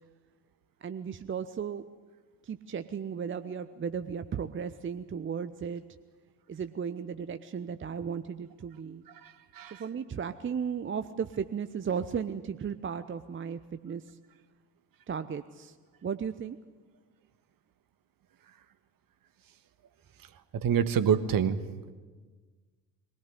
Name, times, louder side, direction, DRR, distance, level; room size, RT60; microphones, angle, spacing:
voice 1, 0.8-1.8 2.4-5.8 6.5-9.0 9.8-14.2 15.1-15.8 16.0-16.6, right 7 dB, 25° right, 11 dB, 0.9 m, -35 dB
voice 2, 9.2-9.8 20.5-21.6, right 8 dB, 45° right, 13 dB, 1.5 m, -27 dB
23.0 x 18.0 x 9.7 m, 1.4 s
figure-of-eight pair, 50°, 49 cm